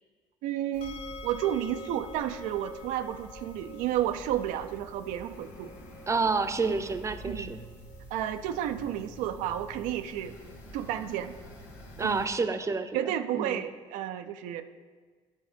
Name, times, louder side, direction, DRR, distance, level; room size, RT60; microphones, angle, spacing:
voice 1, 0.4-5.7 7.3-7.5 8.1-10.4 10.7-11.3 12.0-12.3 12.9-14.6, right 11 dB, 80° right, 8 dB, 0.4 m, -31 dB
sound 1, 0.7-12.3, equal, 90° left, 1.4 m, -48 dB
sound 2, 0.8-13.8, left 3 dB, 50° left, 0.6 m, -50 dB
voice 2, 6.1-7.6 12.0-13.0 13.3-13.6, right 4 dB, 25° right, 9 dB, 0.6 m, -29 dB
9.2 x 4.3 x 5.0 m, 1.5 s
supercardioid pair, 75°, 13 cm